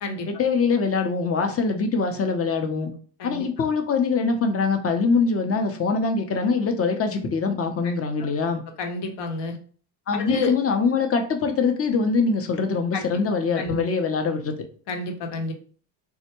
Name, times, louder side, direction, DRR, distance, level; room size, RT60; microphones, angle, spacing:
voice 1, 0.3-2.9 3.2-8.6 10.1-14.5, left 4 dB, 30° left, 5 dB, 0.6 m, -23 dB
voice 2, 8.8-9.6 10.1-10.5 12.9-13.0 13.6-13.8 14.9-15.5, left 2 dB, 60° left, 4 dB, 0.9 m, -29 dB
3.4 x 2.1 x 2.9 m, 0.43 s
supercardioid pair, 70°, 47 cm